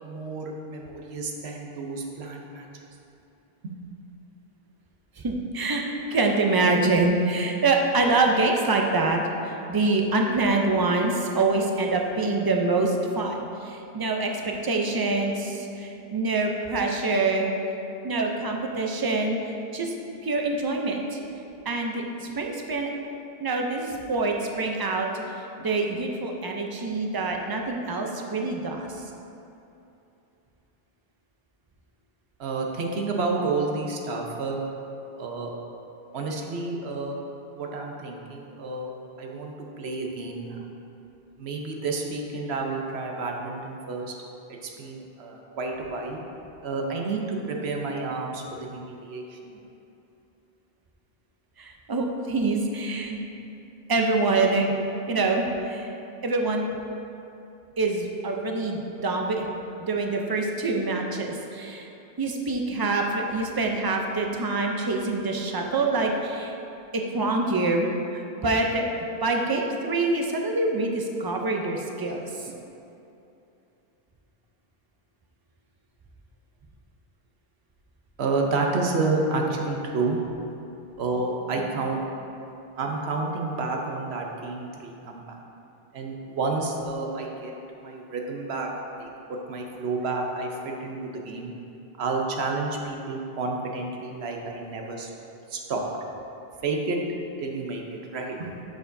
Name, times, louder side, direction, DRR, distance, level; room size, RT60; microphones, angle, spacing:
voice 1, 0.0-2.7 3.6-3.7 32.4-34.6 35.2-35.5 36.1-37.2 37.5-38.9 39.2-40.6 41.4-44.1 44.8-46.2 46.6-49.6 78.2-80.2 81.0-82.0 82.8-85.4 85.9-87.5 87.8-88.7 89.0-91.0 91.2-91.5 92.0-95.1 95.5-95.8 96.6-97.0 97.4-97.8 98.1-98.5, right 3 dB, 85° right, 1 dB, 1.0 m, -30 dB
voice 2, 5.2-17.5 18.0-19.4 19.7-19.9 20.2-21.2 21.7-22.9 23.4-25.2 25.6-28.9 51.6-53.2 53.9-54.7 55.1-55.9 56.2-56.7 57.8-59.5 59.8-61.9 62.2-66.5 66.9-68.8 69.2-72.2, right 3 dB, 35° right, 2 dB, 0.4 m, -25 dB
8.0 x 6.7 x 2.6 m, 2.8 s
omnidirectional pair, 1.0 m